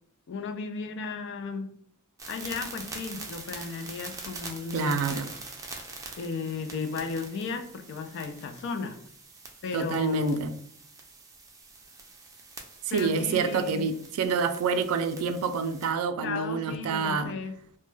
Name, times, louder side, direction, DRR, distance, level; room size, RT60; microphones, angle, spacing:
voice 1, 0.3-1.7 2.3-5.2 6.2-9.0 9.6-10.4 12.9-13.9 16.2-17.5, left 4 dB, 60° left, 0.3 m, -35 dB
sound 1, 2.2-15.9, right 3 dB, 15° right, 0.4 m, -44 dB
voice 2, 4.7-5.3 9.7-10.5 12.9-17.3, right 5 dB, 85° right, 0.3 m, -27 dB
2.2 x 2.1 x 3.1 m
head